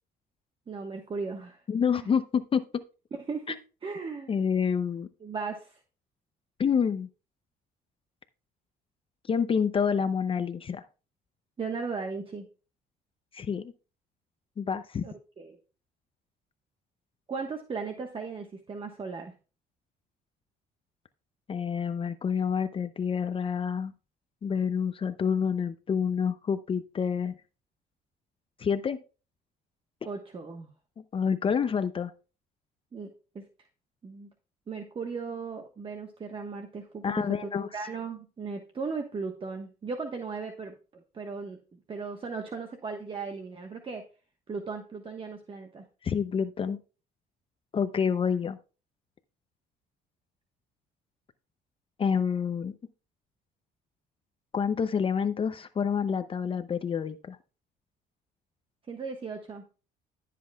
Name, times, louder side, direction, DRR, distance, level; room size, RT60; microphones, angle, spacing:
voice 1, 0.7-1.6 2.0-2.1 3.1-4.3 5.2-5.8 11.6-12.5 15.0-15.6 17.3-19.3 30.0-30.7 32.9-33.4 34.0-34.3 34.7-44.0 44.5-45.8 58.9-59.6, right 4 dB, 30° right, 4 dB, 1.2 m, -37 dB
voice 2, 1.7-2.6 3.5-3.6 4.3-5.1 6.6-7.1 9.3-10.8 13.3-13.7 14.6-15.1 21.5-23.9 24.4-27.3 28.6-29.0 31.1-32.1 37.0-37.7 46.0-46.8 47.7-48.6 52.0-52.7 54.5-57.4, left 6 dB, 30° left, 11 dB, 0.6 m, -28 dB
14.0 x 7.6 x 2.3 m, 0.34 s
cardioid pair, 110°, 17 cm